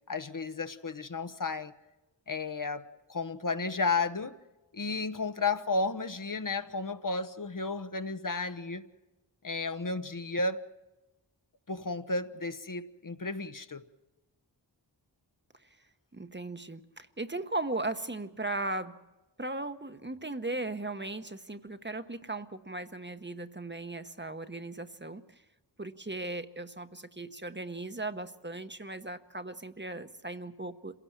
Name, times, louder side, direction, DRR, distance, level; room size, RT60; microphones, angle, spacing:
voice 1, 0.1-1.7 2.3-4.4 4.7-8.8 9.4-10.6 11.7-13.8, left 3 dB, 50° left, 1.0 m, -33 dB
voice 2, 16.1-19.0 19.4-25.2 25.8-31.0, right 2 dB, 25° right, 1.0 m, -37 dB
26.5 x 17.0 x 7.3 m
wide cardioid pair, 50°, 42 cm